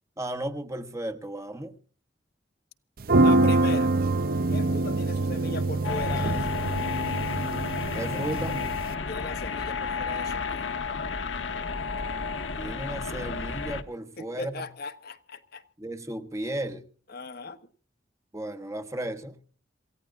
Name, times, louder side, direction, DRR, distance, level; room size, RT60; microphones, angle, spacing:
voice 1, 0.2-1.8 7.9-8.6 12.6-14.7 15.8-16.8 18.3-19.4, right 1 dB, 15° right, 1.2 m, -34 dB
sound 1, 3.0-8.9, right 2 dB, 50° right, 0.6 m, -25 dB
voice 2, 3.2-3.9 4.5-6.7 9.1-10.7 14.2-15.6 17.1-17.7, left 3 dB, 55° left, 1.2 m, -38 dB
sound 2, 5.8-13.8, left 5 dB, 80° left, 1.4 m, -32 dB
27.5 x 15.5 x 2.4 m
head